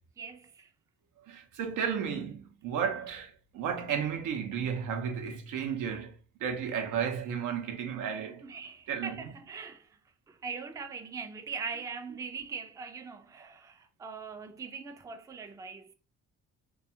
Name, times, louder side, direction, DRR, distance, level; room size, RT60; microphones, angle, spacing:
voice 1, 0.2-0.7 8.4-10.0 10.3-15.9, right 5 dB, 10° right, 0.3 m, -41 dB
voice 2, 1.3-6.1 6.4-8.4 8.9-9.2, right 7 dB, 85° right, 0.6 m, -33 dB
2.3 x 2.3 x 2.7 m
cardioid pair, 90°, 30 cm